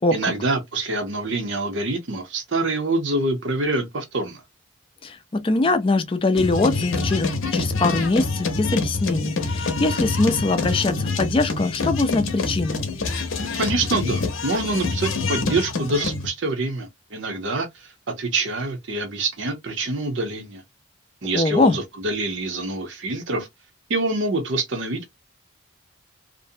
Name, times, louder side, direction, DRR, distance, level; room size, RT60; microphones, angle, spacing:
voice 1, 0.1-4.4 13.5-20.6 21.2-23.5 23.9-25.1, right 2 dB, 65° right, 0.7 m, -26 dB
voice 2, 5.0-12.8 21.3-21.8, left 2 dB, 25° left, 0.4 m, -22 dB
sound 1, 6.4-16.3, left 3 dB, 80° left, 0.7 m, -26 dB
2.5 x 2.0 x 2.6 m
head